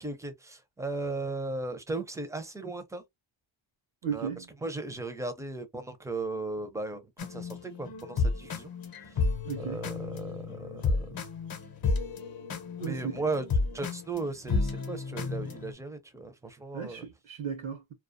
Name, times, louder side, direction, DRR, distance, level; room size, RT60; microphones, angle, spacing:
voice 1, 0.0-3.0 4.1-4.3 4.6-8.7 9.0-9.3 9.6-11.2 12.9-17.1, right 3 dB, 5° right, 0.4 m, -36 dB
voice 2, 4.0-4.5 9.4-9.8 12.8-13.2 16.7-17.9, right 7 dB, 85° right, 0.8 m, -35 dB
sound 1, 7.2-15.7, left 4 dB, 50° left, 0.7 m, -32 dB
2.3 x 2.2 x 2.5 m
wide cardioid pair, 125°, 46 cm